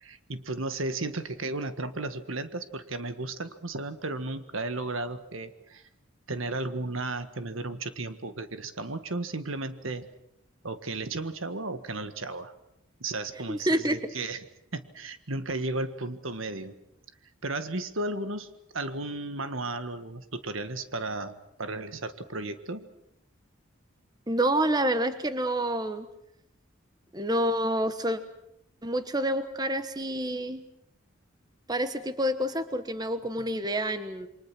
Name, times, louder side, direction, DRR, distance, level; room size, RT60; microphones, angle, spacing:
voice 1, 0.0-5.8 6.3-10.1 10.6-12.5 13.0-14.4 14.7-16.7 17.4-22.9, right 2 dB, 80° right, 10 dB, 1.7 m, -34 dB
voice 2, 13.5-14.0 24.3-26.1 27.1-28.2 28.8-30.6 31.7-34.3, right 1 dB, 20° right, 10 dB, 1.2 m, -28 dB
28.5 x 24.0 x 6.2 m, 0.79 s
head